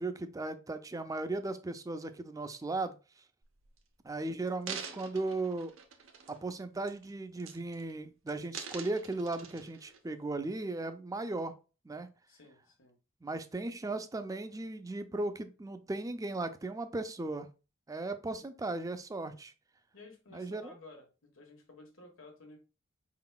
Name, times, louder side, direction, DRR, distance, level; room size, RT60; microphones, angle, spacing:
voice 1, 0.0-3.0 4.0-5.7 6.3-11.5 11.8-12.1 13.2-17.5 17.9-19.5 20.3-20.7, right 2 dB, 15° right, 10 dB, 0.4 m, -37 dB
sound 1, 3.4-3.8 4.4-6.5 6.9-7.1 7.4-8.0 8.3-10.0 10.6-10.7, right 7 dB, 80° right, 0.7 m, -45 dB
voice 2, 12.3-12.9 19.9-22.6, left 2 dB, 90° left, 2 dB, 1.3 m, -54 dB
4.5 x 3.8 x 2.2 m, 0.32 s
head